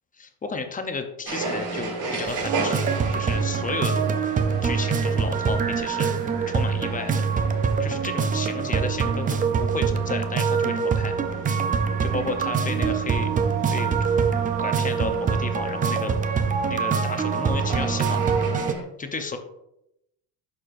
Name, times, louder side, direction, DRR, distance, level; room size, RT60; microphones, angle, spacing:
voice 1, 0.2-2.8 3.1-4.0 4.6-6.1 6.5-7.2 7.8-11.1 12.0-13.3 13.7-14.0 14.6-16.2 16.7-18.4 19.0-19.4, left 4 dB, 20° left, 7 dB, 0.6 m, -32 dB
sound 1, 1.3-18.8, right 2 dB, 65° right, 2.5 m, -35 dB
sound 2, 2.3-18.7, right 6 dB, 20° right, 0.3 m, -24 dB
11.5 x 4.3 x 2.5 m, 0.84 s
cardioid pair, 130°, 42 cm